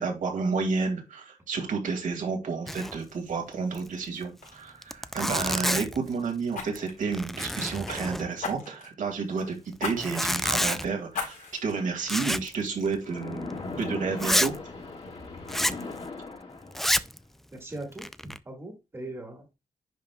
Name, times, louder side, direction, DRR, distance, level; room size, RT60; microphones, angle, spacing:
voice 1, 0.0-9.5 9.8-13.5 13.8-14.5, right 4 dB, 75° right, 2.1 m, -30 dB
Zipper (clothing), 2.7-3.1 3.3-3.4 3.7-3.9 4.5-4.6 4.8-6.1 6.6-6.9 7.1-8.5 9.9-10.9 12.1-12.6 12.8-13.0 13.5-13.6 14.2-14.6 15.5-15.8 16.7-17.2 17.8-18.4, equal, ahead, 0.3 m, -28 dB
Fire, 3.8-4.0 4.4-4.6 6.5-8.0 8.4-9.0 9.8-10.0 10.4-10.5 11.1-11.7 12.3-12.4, left 5 dB, 80° left, 4.0 m, -36 dB
Splash splatter, 13.0-17.0, left 3 dB, 50° left, 3.2 m, -38 dB
voice 2, 17.5-19.5, right 2 dB, 20° right, 1.8 m, -40 dB
10.5 x 5.4 x 2.3 m
wide cardioid pair, 155°, 14 cm